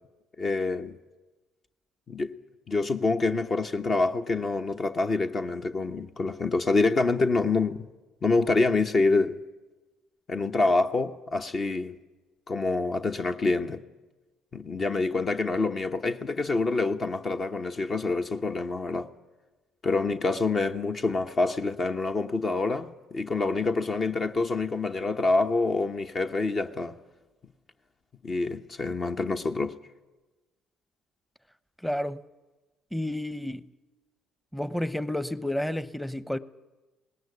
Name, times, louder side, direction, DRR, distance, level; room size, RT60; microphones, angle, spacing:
voice 1, 0.4-1.0 2.1-2.4 2.7-7.9 8.2-9.4 10.3-11.9 12.5-13.8 14.5-19.1 19.8-26.9 28.2-29.8, left 3 dB, 40° left, 1.0 m, -26 dB
voice 2, 31.8-32.2 32.9-33.6 34.5-36.4, left 1 dB, 5° left, 0.9 m, -30 dB
19.0 x 17.5 x 9.8 m
hypercardioid pair, 60°, 0 cm